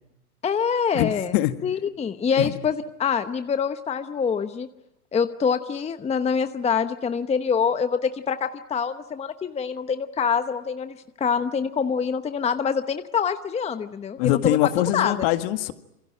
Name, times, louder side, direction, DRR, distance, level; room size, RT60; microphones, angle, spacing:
voice 1, 0.4-1.3 1.6-4.7 5.1-14.6 14.9-15.1, left 6 dB, 15° left, 10 dB, 1.0 m, -25 dB
voice 2, 0.9-1.5 2.4-2.6 14.2-15.7, left 15 dB, 50° left, 9 dB, 2.0 m, -23 dB
27.5 x 24.0 x 8.9 m, 0.88 s
hypercardioid pair, 115°, 45 cm